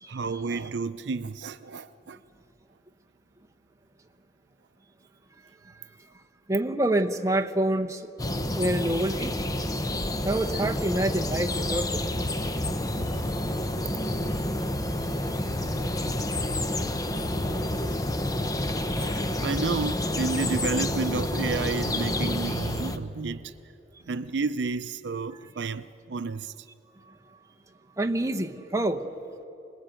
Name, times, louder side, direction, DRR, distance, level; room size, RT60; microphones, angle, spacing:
voice 1, 0.1-2.2 19.0-23.5 24.1-26.7, right 4 dB, 70° right, 0.6 m, -31 dB
voice 2, 6.5-8.1 8.5-9.3 10.2-12.0 14.8-15.1 27.1-27.2 28.0-29.0, right 1 dB, 15° right, 0.9 m, -27 dB
sound 1, 8.2-23.0, left 1 dB, 20° left, 0.9 m, -29 dB
26.5 x 19.5 x 8.9 m
head